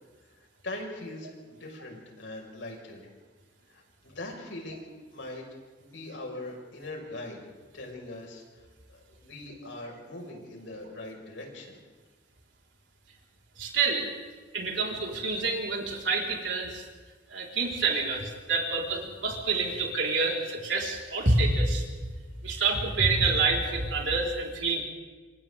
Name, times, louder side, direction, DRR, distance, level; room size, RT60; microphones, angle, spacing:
voice 1, 0.6-3.1 3.7-5.4 5.8-7.4 7.7-8.4 8.9-11.8, left 2 dB, 85° left, 0 dB, 5.5 m, -41 dB
voice 2, 13.6-14.1 14.5-16.9 17.3-21.8 22.4-24.8, right 3 dB, 85° right, -1 dB, 4.6 m, -27 dB
27.5 x 26.0 x 3.7 m, 1.4 s
head